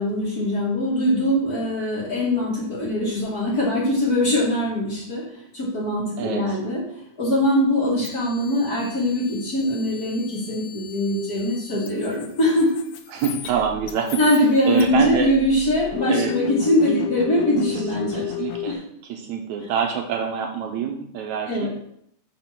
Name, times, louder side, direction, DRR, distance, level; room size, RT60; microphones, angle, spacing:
voice 1, 0.0-5.3 5.5-6.8 7.2-12.7 14.2-18.3 18.7-18.8 21.5-21.7, left 1 dB, 30° left, -6 dB, 2.6 m, -22 dB
voice 2, 6.2-6.6 7.9-8.1 13.1-14.2 14.7-15.3 16.1-16.3 18.1-18.8 19.1-21.7, right 7 dB, 75° right, 3 dB, 2.0 m, -25 dB
sound 1, 8.0-18.7, left 12 dB, 85° left, 2.2 m, -34 dB
6.0 x 5.8 x 6.0 m, 0.71 s
omnidirectional pair, 3.5 m